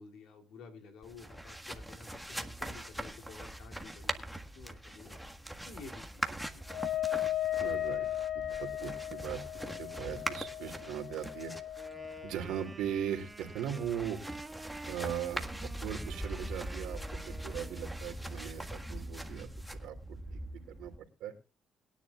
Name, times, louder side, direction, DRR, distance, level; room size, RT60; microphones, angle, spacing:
voice 1, 0.0-5.2 5.6-6.6, left 4 dB, 85° left, 3 dB, 3.2 m, -52 dB
sound 1, 1.0-21.0, right 1 dB, ahead, 1.6 m, -42 dB
Wind instrument woodwind instrument, 6.7-12.4, left 12 dB, 45° left, 1.2 m, -36 dB
voice 2, 7.6-8.1 8.3-9.4 9.8-11.5 12.2-14.2 14.9-15.5 15.8-19.5 19.7-20.0 20.3-20.4 20.8-20.9 21.2-21.3, right 9 dB, 90° right, 5 dB, 3.0 m, -38 dB
Wind instrument woodwind instrument 2, 11.8-18.0, right 3 dB, 20° right, 1.5 m, -49 dB
22.0 x 10.0 x 2.4 m, 0.33 s
cardioid pair, 90°, 0 cm